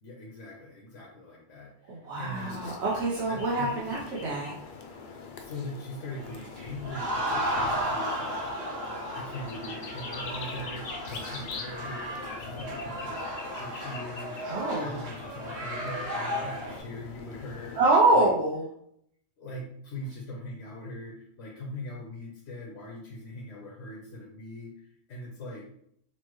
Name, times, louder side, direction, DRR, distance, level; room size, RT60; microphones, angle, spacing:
voice 1, 0.0-2.7 3.3-3.8 5.4-17.8 18.1-18.3 19.4-25.6, left 1 dB, 80° left, -2 dB, 1.2 m, -41 dB
voice 2, 1.9-4.5 14.4-15.0 17.7-18.6, right 2 dB, 65° right, -5 dB, 1.0 m, -25 dB
sound 1, 2.3-17.8, left 4 dB, 55° left, 0.6 m, -43 dB
sound 2, 6.3-16.8, equal, 80° right, 1.7 m, -34 dB
5.7 x 2.2 x 3.1 m, 0.70 s
omnidirectional pair, 1.3 m